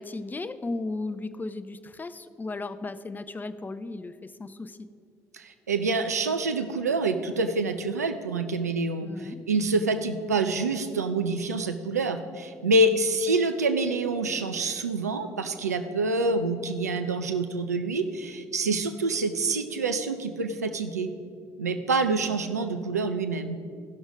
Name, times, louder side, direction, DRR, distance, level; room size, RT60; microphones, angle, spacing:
voice 1, 0.0-4.9 9.0-9.4, left 3 dB, 20° left, 13 dB, 0.5 m, -35 dB
voice 2, 5.3-21.1 21.6-23.6, right 3 dB, 90° right, 8 dB, 0.5 m, -27 dB
15.0 x 6.2 x 5.1 m, 2.3 s
figure-of-eight pair, 55°, 8 cm